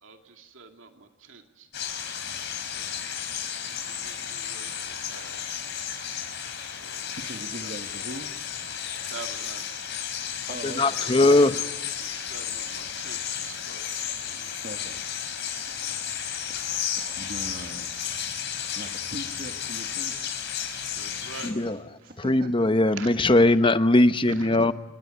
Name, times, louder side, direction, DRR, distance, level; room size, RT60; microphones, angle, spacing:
voice 1, 0.0-1.7 2.7-3.2 3.8-5.4 6.7-7.1 7.4-7.7 9.0-9.9 10.9-13.9 14.2-14.5 21.0-21.5 22.0-22.1 22.9-23.1 24.3-24.6, right 4 dB, 75° right, 4 dB, 2.3 m, -45 dB
sound 1, 1.7-21.5, left 8 dB, 60° left, 4.8 m, -33 dB
voice 2, 7.1-8.3 10.5-11.3 14.6-15.1 16.0-18.4 18.7-20.3 22.0-22.7, right 1 dB, 50° right, 4 dB, 1.6 m, -41 dB
voice 3, 10.6-11.6 21.4-21.8 22.2-24.7, left 2 dB, 25° left, 11 dB, 1.0 m, -20 dB
28.0 x 20.0 x 9.8 m, 1.1 s
head